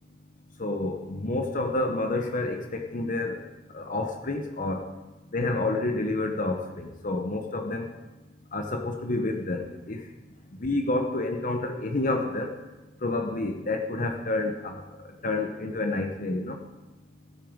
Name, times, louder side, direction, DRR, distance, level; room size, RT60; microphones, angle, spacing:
voice 1, 0.6-3.4 3.7-4.9 5.3-7.9 8.5-10.1 10.5-12.6 13.0-14.8 15.2-16.6, left 2 dB, 45° left, 4 dB, 0.9 m, -29 dB
16.0 x 7.5 x 5.2 m, 1.1 s
head